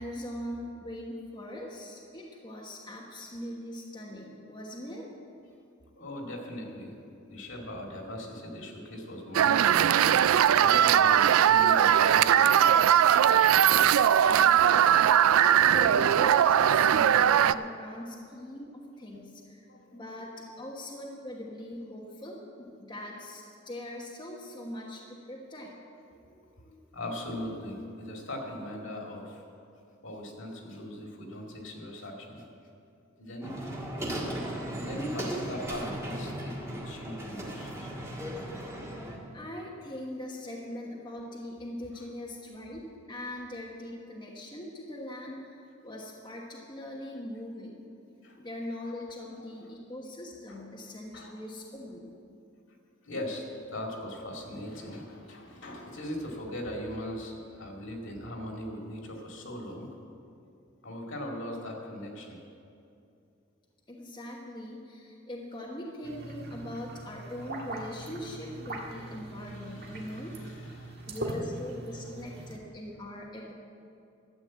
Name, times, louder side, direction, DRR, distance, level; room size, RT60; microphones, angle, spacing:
voice 1, 0.0-5.1 14.4-14.9 15.4-19.7 19.9-25.7 39.3-45.5 45.8-47.8 48.4-52.1 63.9-70.4 71.1-73.5, left 1 dB, 20° left, -3 dB, 1.2 m, -41 dB
voice 2, 6.0-7.0 7.3-10.0 10.6-12.9 15.5-15.6 19.7-20.2 22.1-22.2 26.1-29.4 30.0-32.5 33.2-33.6 34.6-37.9 41.9-42.1 48.2-48.4 49.4-49.7 50.5-50.6 51.1-51.4 53.0-59.9 60.8-62.4 69.0-71.2, left 1 dB, 65° left, 0 dB, 2.4 m, -40 dB
sound 1, 9.3-17.5, right 9 dB, 85° right, 0.3 m, -20 dB
sound 2, 33.4-39.2, right 1 dB, 15° right, 1.6 m, -36 dB
sound 3, 66.0-72.6, right 1 dB, 50° right, 1.6 m, -40 dB
13.0 x 8.7 x 7.5 m, 2.5 s
head